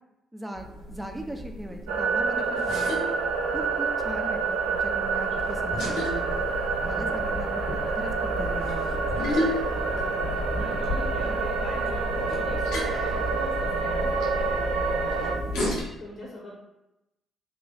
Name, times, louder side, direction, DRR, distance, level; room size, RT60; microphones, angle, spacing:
voice 1, 0.3-3.1 3.5-6.5 6.8-8.8, right 1 dB, 10° right, 4 dB, 0.6 m, -39 dB
sound 1, 0.5-15.8, left 1 dB, 80° left, 1.0 m, -33 dB
sound 2, 1.9-15.4, right 4 dB, 80° right, 0.4 m, -28 dB
voice 2, 9.8-10.2 10.6-15.4 16.0-16.5, left 1 dB, 50° left, -3 dB, 1.0 m, -41 dB
3.8 x 3.1 x 2.3 m, 0.92 s
hypercardioid pair, 45°, 0 cm